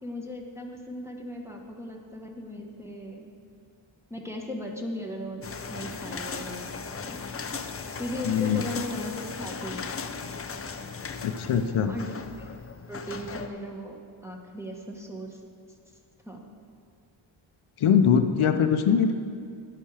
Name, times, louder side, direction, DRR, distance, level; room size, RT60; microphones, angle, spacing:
voice 1, 0.0-3.3 4.1-7.2 8.0-10.2 11.8-12.0 12.3-12.5 12.9-14.0 14.2-15.4 16.2-16.4, left 1 dB, 5° right, 0 dB, 1.2 m, -37 dB
sound 1, 5.4-13.5, left 5 dB, 30° left, 0.5 m, -37 dB
voice 2, 8.2-8.6 11.2-11.9 17.8-19.1, left 7 dB, 80° left, 7 dB, 0.8 m, -22 dB
10.5 x 8.6 x 4.9 m, 2.3 s
wide cardioid pair, 100°, 49 cm